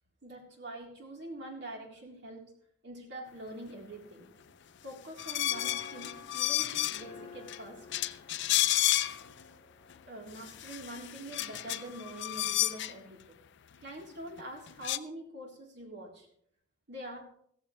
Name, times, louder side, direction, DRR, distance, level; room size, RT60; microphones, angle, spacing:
voice 1, 0.2-2.4 2.8-4.3 4.8-7.9 10.1-13.4 13.8-16.3 16.9-17.2, right 1 dB, 60° right, -1 dB, 3.7 m, -45 dB
sound 1, 3.8-10.9, left 4 dB, 30° left, 5.4 m, -53 dB
sound 2, 5.2-7.2 7.5-7.6 7.9-9.4 9.9-10.0 10.3-12.9 14.4-14.5 14.7-15.0, left 14 dB, 60° left, 0.5 m, -31 dB
15.5 x 15.0 x 3.3 m, 0.66 s
head